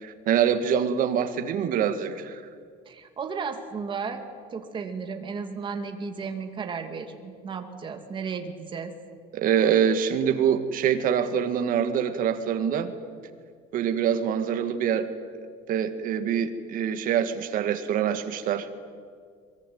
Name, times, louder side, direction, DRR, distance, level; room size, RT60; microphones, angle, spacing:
voice 1, 0.0-2.4 9.3-12.9 13.7-15.1 15.7-18.7, right 8 dB, 50° right, 8 dB, 2.0 m, -25 dB
voice 2, 2.9-4.2 4.5-8.9, right 5 dB, 25° right, 6 dB, 2.4 m, -34 dB
23.5 x 23.0 x 9.5 m, 2.1 s
cardioid pair, 155°, 19 cm